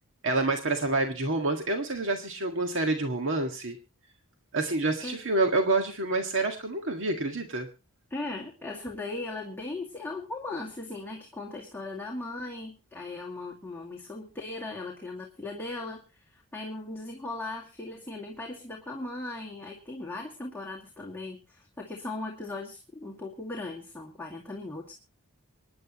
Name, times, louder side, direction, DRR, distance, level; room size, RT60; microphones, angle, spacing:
voice 1, 0.2-3.8 4.5-7.7, right 2 dB, 60° right, 3 dB, 1.8 m, -28 dB
voice 2, 8.1-24.9, left 2 dB, 10° left, -2 dB, 2.3 m, -38 dB
26.0 x 10.5 x 3.0 m, 0.31 s
head